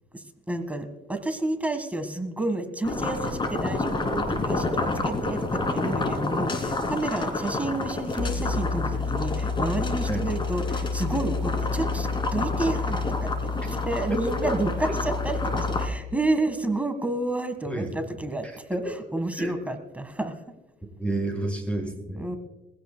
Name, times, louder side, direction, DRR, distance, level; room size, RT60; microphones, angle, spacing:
voice 1, 0.1-20.5 22.2-22.4, right 2 dB, 10° right, 8 dB, 1.5 m, -30 dB
sound 1, 2.8-15.9, left 3 dB, 30° left, 2.7 m, -28 dB
voice 2, 21.0-22.3, right 2 dB, 5° left, 2 dB, 5.5 m, -30 dB
23.0 x 16.0 x 2.2 m, 1.1 s
cardioid pair, 110°, 17 cm